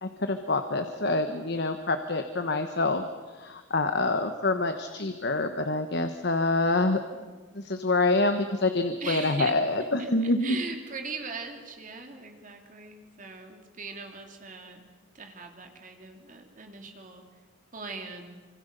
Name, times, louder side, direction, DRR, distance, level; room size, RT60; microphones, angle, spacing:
voice 1, 0.0-7.0 7.5-10.6, left 2 dB, 55° left, 7 dB, 1.3 m, -26 dB
voice 2, 9.0-9.6 10.0-14.8 15.1-17.3 17.7-18.4, right 4 dB, 40° right, 4 dB, 3.0 m, -40 dB
26.0 x 25.5 x 6.8 m, 1.4 s
head